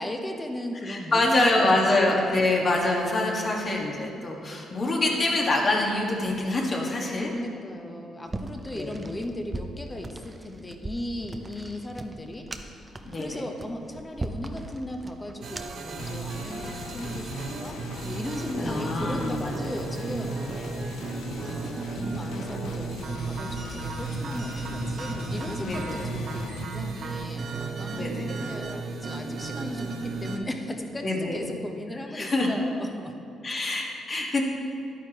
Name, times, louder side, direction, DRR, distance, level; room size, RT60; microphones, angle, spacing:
voice 1, 0.0-2.0 7.1-17.8 18.0-20.3 21.4-33.1, left 1 dB, 15° left, 4 dB, 0.9 m, -36 dB
voice 2, 0.8-7.3 8.7-8.9 13.0-13.5 18.6-19.5 20.5-20.6 25.6-26.0 27.9-28.3 31.0-31.4 32.1-32.5 33.4-34.4, left 2 dB, 40° left, -1 dB, 1.6 m, -25 dB
sound 1, 8.3-15.9, right 2 dB, 20° right, 0.6 m, -39 dB
sound 2, 15.4-30.4, right 4 dB, 55° right, 0.9 m, -34 dB
sound 3, 16.0-26.6, left 5 dB, 75° left, 0.4 m, -39 dB
11.0 x 9.2 x 3.0 m, 2.6 s
cardioid pair, 90°, 0 cm